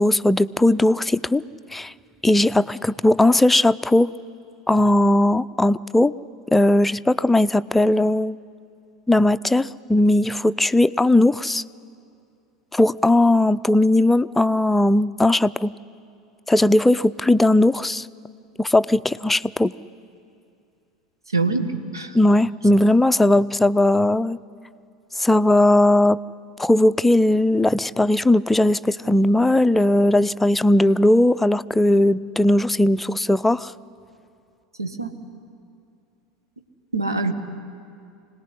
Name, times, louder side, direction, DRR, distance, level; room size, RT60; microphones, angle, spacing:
voice 1, 0.0-1.4 1.7-1.9 2.2-4.1 4.7-6.1 6.5-8.4 9.1-11.6 12.7-15.7 16.5-18.1 18.6-19.7 22.1-24.4 25.2-26.2 26.6-33.7, left 1 dB, 5° left, 13 dB, 0.5 m, -18 dB
voice 2, 21.3-22.1 34.8-35.1 36.9-37.3, right 3 dB, 80° right, 7 dB, 1.4 m, -24 dB
25.5 x 19.0 x 9.9 m, 2.5 s
figure-of-eight pair, 75°, 2 cm